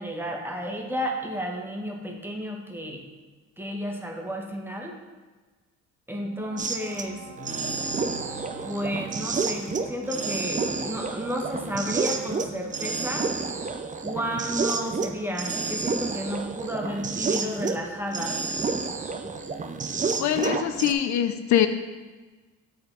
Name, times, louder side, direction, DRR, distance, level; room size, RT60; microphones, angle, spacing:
voice 1, 0.0-3.1 3.6-5.0 6.1-7.3 8.6-13.4 14.0-18.4 19.2-19.3, equal, 5° right, 1 dB, 1.1 m, -32 dB
Brass instrument, 6.1-10.5, right 5 dB, 70° right, 1.3 m, -46 dB
sound 1, 6.6-7.0 7.4-17.8 18.1-20.9, right 4 dB, 25° right, 0.6 m, -30 dB
sound 2, 7.2-10.1, equal, 85° left, 1.0 m, -47 dB
voice 2, 20.2-21.7, left 10 dB, 70° left, 10 dB, 0.5 m, -23 dB
8.5 x 4.3 x 3.9 m, 1.3 s
cardioid pair, 90°, 30 cm